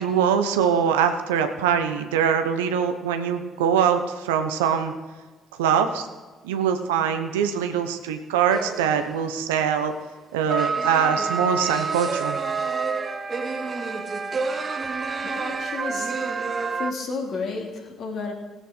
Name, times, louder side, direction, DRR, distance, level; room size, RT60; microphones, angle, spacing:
voice 1, 0.0-4.9 5.6-6.1 6.4-9.9 10.3-12.4, right 7 dB, 85° right, 7 dB, 1.0 m, -23 dB
sound 1, 8.5-9.3 10.5-16.9, right 4 dB, 40° right, 1.2 m, -28 dB
voice 2, 15.2-16.2 16.7-18.3, left 4 dB, 60° left, 1 dB, 2.7 m, -32 dB
17.0 x 8.7 x 5.1 m, 1.3 s
hypercardioid pair, 55°, 0 cm